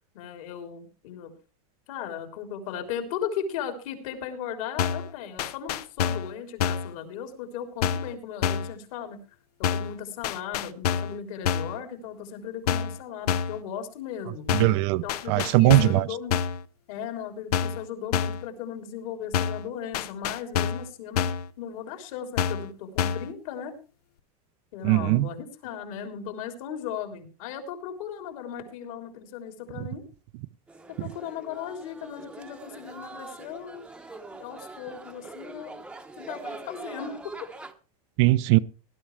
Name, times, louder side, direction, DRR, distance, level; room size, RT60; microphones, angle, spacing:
voice 1, 0.1-1.3 1.9-9.2 9.6-14.5 15.0-16.4 16.9-21.3 21.6-23.7 24.7-30.0 30.9-33.8 34.3-35.7 36.2-37.5, left 8 dB, 60° left, 3.7 m, -37 dB
sound 1, 4.8-5.1 5.4-6.3 6.6-6.9 7.8-8.1 8.4-8.7 9.6-10.0 10.2-11.2 11.4-11.8 12.7-13.0 13.3-13.6 14.5-14.8 15.1-16.0 16.3-16.6 17.5-17.8 18.1-18.5 19.3-19.7 19.9-20.9 21.2-21.5 22.4-22.7 23.0-23.3, left 8 dB, 80° left, 1.0 m, -27 dB
voice 2, 14.5-15.0 15.3-16.0 24.8-25.3 38.2-38.6, right 18 dB, 45° right, 0.6 m, -20 dB
sound 2, 30.7-37.7, right 3 dB, 5° right, 0.9 m, -43 dB
19.0 x 11.5 x 3.3 m
supercardioid pair, 160°, 20 cm